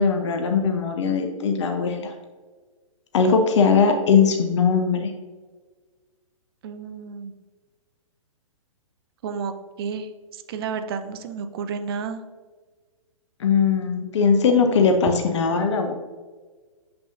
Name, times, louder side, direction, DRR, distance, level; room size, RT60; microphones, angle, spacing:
voice 1, 0.0-2.1 3.1-5.1 13.4-15.9, left 5 dB, 55° left, 5 dB, 0.7 m, -20 dB
voice 2, 6.6-7.3 9.2-9.5 9.8-12.2, right 6 dB, 45° right, 9 dB, 0.6 m, -31 dB
6.9 x 5.6 x 2.6 m, 1.4 s
figure-of-eight pair, 125°, 18 cm